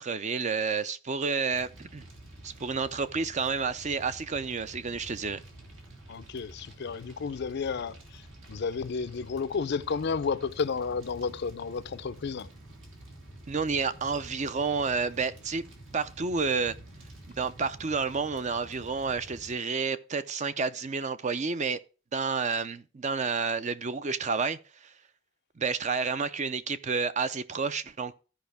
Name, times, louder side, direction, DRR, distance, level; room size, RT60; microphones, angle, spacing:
voice 1, 0.0-2.0 2.4-5.4 13.5-15.6 15.9-16.8 17.4-21.8 22.1-24.9 25.6-28.2, right 5 dB, 40° right, 0.5 m, -30 dB
Fire, 1.5-19.5, right 1 dB, 70° right, 2.5 m, -49 dB
voice 2, 6.1-8.0 8.5-12.5, left 5 dB, 60° left, 0.5 m, -32 dB
14.5 x 5.1 x 3.4 m
head